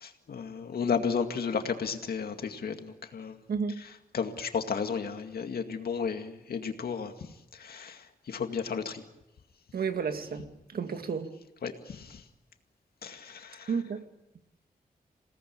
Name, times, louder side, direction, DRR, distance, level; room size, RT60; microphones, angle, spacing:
voice 1, 0.0-3.4 4.1-7.1 7.6-9.0 11.6-12.2 13.0-13.7, left 6 dB, 85° left, 6 dB, 2.2 m, -33 dB
voice 2, 3.5-3.8 9.7-11.3 13.7-14.0, right 5 dB, 75° right, 7 dB, 2.0 m, -32 dB
27.5 x 18.0 x 8.8 m, 0.94 s
wide cardioid pair, 160°, 15 cm